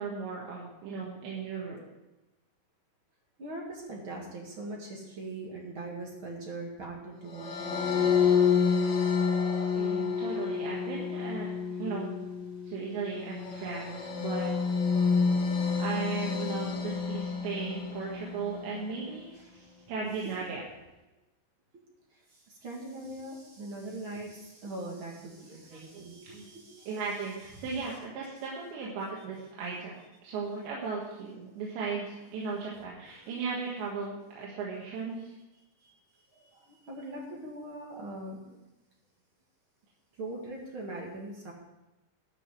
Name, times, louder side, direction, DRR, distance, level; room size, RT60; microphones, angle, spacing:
voice 1, 0.0-1.8 9.7-11.5 11.8-12.1 12.6-14.5 15.8-20.6 25.7-26.5 26.9-30.0 30.2-35.3, right 4 dB, 85° right, -4 dB, 3.8 m, -36 dB
voice 2, 3.4-8.2 15.6-15.7 19.3-19.6 22.1-27.0 27.5-27.7 28.9-29.0 33.2-33.3 35.8-35.9 36.3-38.6 40.2-41.5, right 2 dB, 45° right, -1 dB, 1.7 m, -42 dB
sound 1, 7.3-18.6, left 6 dB, 45° left, 2.4 m, -29 dB
11.5 x 6.2 x 7.5 m, 1.0 s
omnidirectional pair, 5.0 m